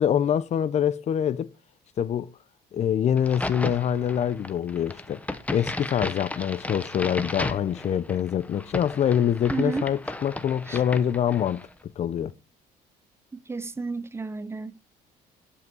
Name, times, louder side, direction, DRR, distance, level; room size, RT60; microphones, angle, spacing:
voice 1, 0.0-1.5 2.0-2.3 2.7-5.2 5.5-12.3, left 9 dB, 40° left, 0.6 m, -25 dB
Crack, 3.2-11.7, left 2 dB, 10° left, 0.9 m, -35 dB
voice 2, 9.5-9.9 10.7-10.8 13.3-14.8, right 4 dB, 15° right, 0.7 m, -32 dB
11.0 x 5.7 x 5.3 m
cardioid pair, 110°, 17 cm